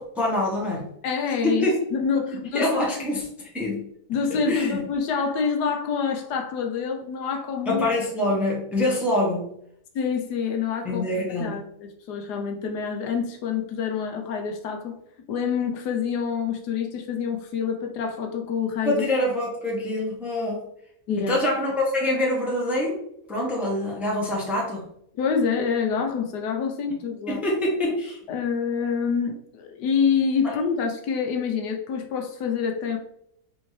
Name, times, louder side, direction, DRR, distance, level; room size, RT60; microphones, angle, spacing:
voice 1, 0.0-0.9 1.4-1.8 2.3-3.8 4.5-4.8 7.7-9.6 10.8-11.6 18.8-20.7 21.2-22.9 23.2-24.9 27.3-28.2 30.4-30.5, left 1 dB, ahead, -3 dB, 0.7 m, -25 dB
voice 2, 1.0-2.7 4.1-7.8 9.9-11.0 11.4-15.0 15.3-19.0 21.1-21.4 25.2-27.4 28.3-33.0, left 6 dB, 90° left, 3 dB, 1.3 m, -26 dB
4.2 x 2.7 x 3.1 m, 0.70 s
omnidirectional pair, 1.7 m